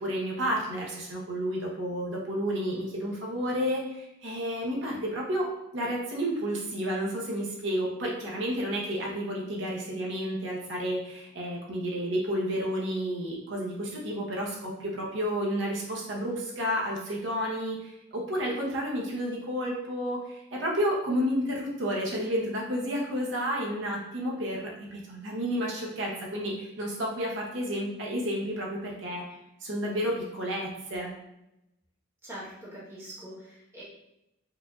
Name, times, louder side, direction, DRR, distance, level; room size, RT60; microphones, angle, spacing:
voice 1, 0.0-5.5 5.7-29.2 29.6-31.1, equal, 60° right, -2 dB, 0.9 m, -31 dB
voice 2, 32.2-33.8, right 1 dB, 10° right, -7 dB, 1.1 m, -43 dB
4.7 x 2.6 x 2.4 m, 0.88 s
head